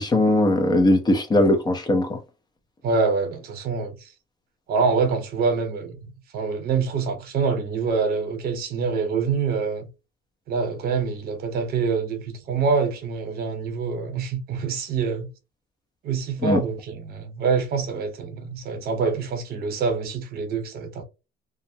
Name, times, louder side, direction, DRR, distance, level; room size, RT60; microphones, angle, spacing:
voice 1, 0.0-2.2 16.4-16.6, left 1 dB, 25° left, 0.7 m, -19 dB
voice 2, 2.8-4.0 4.7-6.0 6.3-9.9 10.5-15.3 16.0-21.0, right 5 dB, 65° right, 0.9 m, -25 dB
2.4 x 2.1 x 2.7 m
cardioid pair, 110°, 17 cm